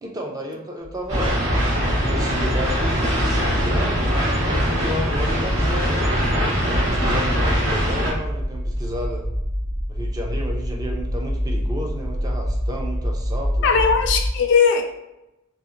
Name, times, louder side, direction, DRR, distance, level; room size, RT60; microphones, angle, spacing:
voice 1, 0.0-1.3 2.0-4.0 4.5-6.1 6.6-9.3 9.9-14.0, equal, 15° right, 0 dB, 0.3 m, -32 dB
sound 1, 0.8-14.3, equal, 90° right, 0.7 m, -28 dB
sound 2, 1.1-8.1, equal, 65° right, 1.0 m, -22 dB
voice 2, 13.6-14.8, left 6 dB, 55° left, 5 dB, 0.3 m, -18 dB
2.7 x 2.4 x 2.5 m, 0.93 s
head